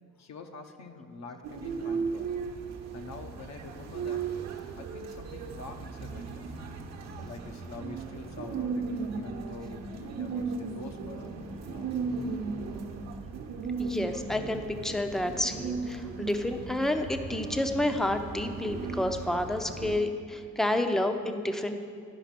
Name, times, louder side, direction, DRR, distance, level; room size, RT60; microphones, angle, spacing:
voice 1, 0.2-2.3 2.9-4.3 4.8-6.5 7.2-11.4 11.7-11.9, left 3 dB, 60° left, 6 dB, 0.9 m, -45 dB
sound 1, 1.4-20.0, right 5 dB, 60° right, 1.0 m, -36 dB
voice 2, 13.8-21.8, left 1 dB, ahead, 7 dB, 0.6 m, -30 dB
11.0 x 5.1 x 5.9 m, 2.3 s
cardioid pair, 90°, 30 cm